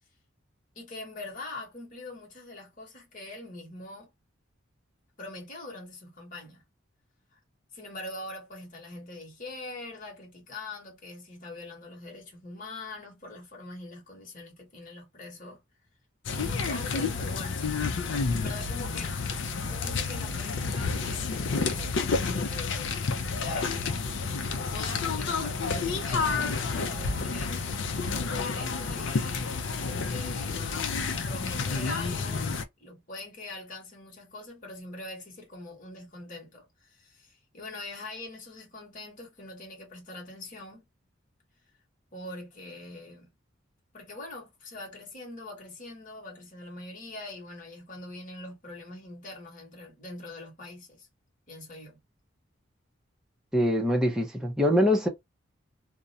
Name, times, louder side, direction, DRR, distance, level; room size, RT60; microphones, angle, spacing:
voice 1, 0.7-4.1 5.2-6.6 7.3-7.4 7.7-15.6 16.3-17.6 18.1-19.2 19.6-24.1 24.6-27.6 28.1-29.6 29.8-30.9 31.2-32.5 32.8-40.8 42.1-43.3 43.9-51.1 51.5-52.0, left 2 dB, 40° left, 1.1 m, -43 dB
sound 1, 16.2-32.6, left 4 dB, 65° left, 0.4 m, -30 dB
voice 2, 53.5-55.1, equal, 5° right, 0.5 m, -23 dB
2.4 x 2.1 x 2.7 m
head